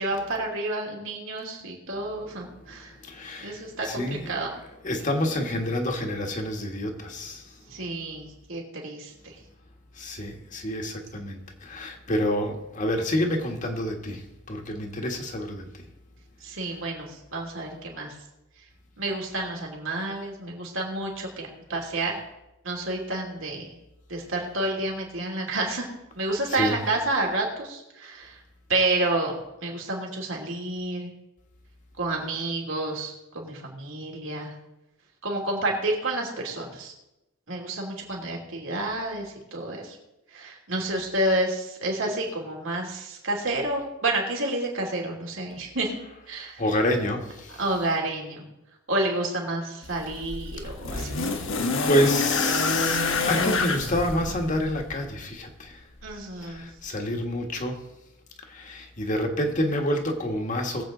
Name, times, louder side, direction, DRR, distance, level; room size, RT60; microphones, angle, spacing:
voice 1, 0.0-2.9 3.4-4.5 7.7-9.4 16.4-18.1 19.0-22.2 22.6-23.7 24.1-25.9 26.1-28.4 28.7-29.3 29.6-31.1 32.0-34.5 35.2-36.9 37.5-40.0 40.3-45.9 46.3-46.6 47.6-48.4 48.9-51.3 56.0-56.7, right 2 dB, 75° right, 0 dB, 3.0 m, -29 dB
voice 2, 3.0-4.3 4.8-7.5 10.0-15.8 26.5-26.8 45.5-45.6 46.3-47.6 50.6-51.4 51.9-55.8 56.4-57.8 58.4-60.8, left 1 dB, 40° left, 3 dB, 1.5 m, -28 dB
sound 1, 49.8-55.1 56.1-56.2, left 3 dB, 70° left, 1.2 m, -27 dB
20.5 x 7.9 x 3.9 m, 0.94 s
head